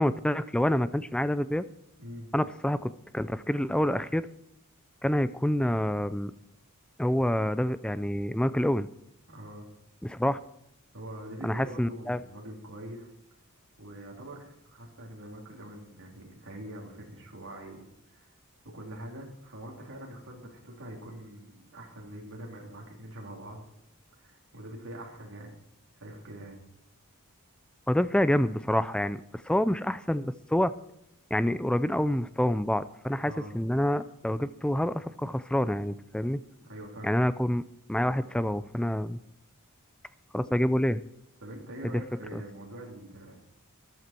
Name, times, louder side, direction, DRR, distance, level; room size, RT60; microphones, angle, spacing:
voice 1, 0.0-1.6 2.3-4.3 5.0-6.3 7.0-8.9 10.0-10.4 11.4-12.2 27.9-30.7 31.3-36.4 37.0-37.6 37.9-39.2 40.3-41.0 41.8-41.9 42.3-42.4, left 1 dB, 5° left, 14 dB, 0.4 m, -27 dB
voice 2, 9.3-9.6 10.9-13.1 13.8-18.3 18.6-23.6 24.2-25.5 25.9-26.6 33.2-33.5 36.7-37.2 41.4-43.4, right 1 dB, 60° right, -1 dB, 3.4 m, -44 dB
13.5 x 12.5 x 4.5 m, 0.81 s
head